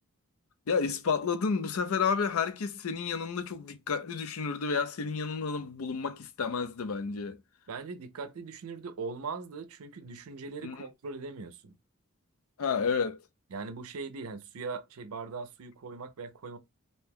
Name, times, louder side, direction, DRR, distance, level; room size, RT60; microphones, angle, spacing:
voice 1, 0.7-7.4 10.6-10.8 12.6-13.2, left 5 dB, 70° left, 0.5 m, -31 dB
voice 2, 7.7-11.7 13.5-16.6, right 4 dB, 75° right, 0.5 m, -40 dB
2.7 x 2.2 x 3.3 m
head